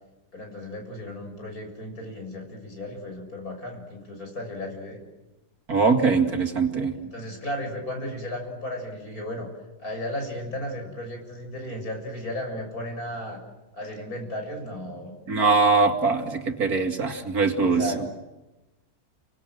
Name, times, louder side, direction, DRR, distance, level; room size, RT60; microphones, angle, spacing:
voice 1, 0.3-5.0 7.0-9.5 9.8-13.4 13.7-15.1 17.6-18.1, left 1 dB, 60° left, 3 dB, 7.4 m, -34 dB
voice 2, 5.7-7.0 15.3-17.9, right 4 dB, 65° right, 5 dB, 2.8 m, -22 dB
30.0 x 24.5 x 7.8 m, 1.0 s
omnidirectional pair, 1.7 m